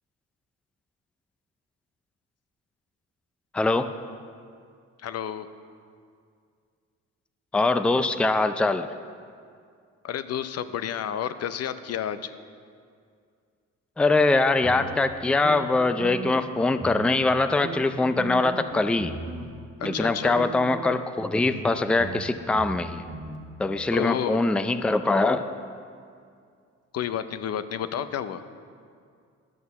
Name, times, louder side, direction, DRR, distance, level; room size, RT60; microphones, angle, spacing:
voice 1, 3.5-3.9 7.5-8.9 14.0-19.1 19.8-23.0 23.6-25.4, left 3 dB, 5° left, 10 dB, 0.4 m, -23 dB
voice 2, 5.0-5.5 10.0-12.3 19.9-20.5 23.9-24.4 26.9-28.4, left 9 dB, 55° left, 12 dB, 0.6 m, -30 dB
sound 1, 14.6-16.5 16.8-17.4 17.6-19.5 19.8-20.1 20.3-23.4, right 3 dB, 40° right, 1.3 m, -38 dB
11.0 x 6.4 x 7.0 m, 2.2 s
cardioid pair, 90°, 30 cm